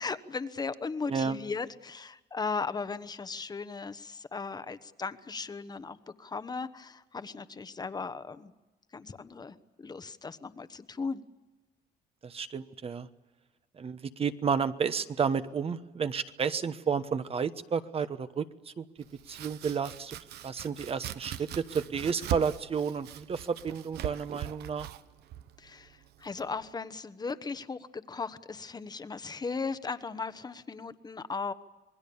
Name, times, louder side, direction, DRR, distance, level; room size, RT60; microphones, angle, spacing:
voice 1, 0.0-8.5 8.9-11.2 25.6-31.5, left 4 dB, 25° left, 12 dB, 1.1 m, -37 dB
voice 2, 12.2-13.1 13.8-18.5 18.8-18.9 19.3-20.2 20.4-24.9, right 6 dB, 35° right, 11 dB, 1.2 m, -31 dB
Domestic sounds home sounds, 19.0-26.7, right 12 dB, 75° right, 1.0 m, -41 dB
27.0 x 21.0 x 7.1 m, 1.1 s
cardioid pair, 110°, 17 cm